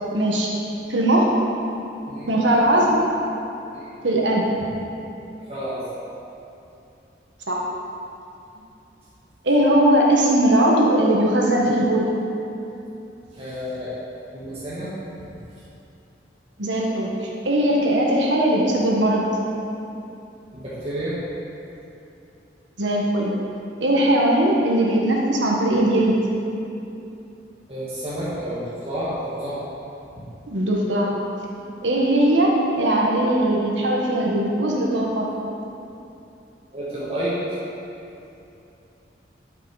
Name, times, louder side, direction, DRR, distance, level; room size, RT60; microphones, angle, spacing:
voice 1, 0.1-0.5 0.9-1.4 2.3-3.0 4.0-4.4 7.5-7.6 9.4-12.1 16.6-19.3 22.8-23.3 23.8-26.2 30.5-31.1 31.5-35.3, right 1 dB, 85° right, -2 dB, 1.4 m, -19 dB
voice 2, 5.5-5.8 13.3-13.9 14.3-14.9 20.5-21.1 27.7-29.6 30.1-30.2 36.7-37.3, equal, 30° right, -11 dB, 1.8 m, -30 dB
11.5 x 6.0 x 4.9 m, 2.8 s
head